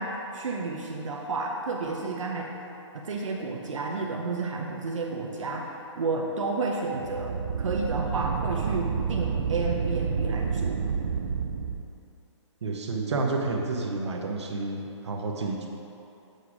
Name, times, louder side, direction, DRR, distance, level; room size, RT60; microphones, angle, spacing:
voice 1, 0.0-2.5 2.9-10.8, right 3 dB, 85° right, 0 dB, 0.8 m, -31 dB
sound 1, 6.9-11.8, right 6 dB, 40° right, 0.4 m, -29 dB
voice 2, 12.6-15.7, right 3 dB, 60° right, 1 dB, 1.0 m, -30 dB
6.7 x 5.6 x 4.9 m, 2.9 s
hypercardioid pair, 175°, 16 cm